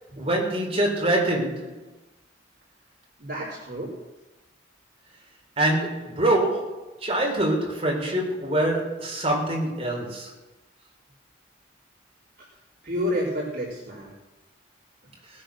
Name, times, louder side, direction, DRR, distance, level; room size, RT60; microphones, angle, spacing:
voice 1, 0.2-1.7 5.6-10.3, right 1 dB, 30° right, -2 dB, 4.2 m, -25 dB
voice 2, 3.2-3.9 12.8-14.1, equal, 45° right, -6 dB, 4.8 m, -29 dB
19.5 x 8.7 x 6.5 m, 1.0 s
head